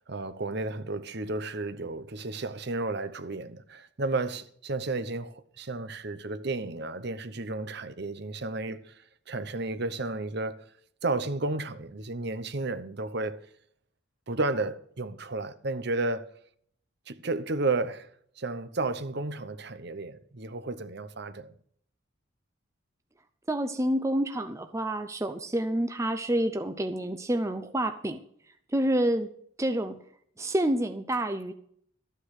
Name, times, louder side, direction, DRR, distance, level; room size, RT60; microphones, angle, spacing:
voice 1, 0.1-9.0 9.3-10.7 11.0-13.4 14.3-16.3 17.1-18.1 18.4-21.5, right 2 dB, 55° right, 0.9 m, -32 dB
voice 2, 23.5-28.2 28.7-29.3 29.6-29.9 30.4-31.5, right 1 dB, 15° right, 0.6 m, -28 dB
13.5 x 9.1 x 4.9 m
head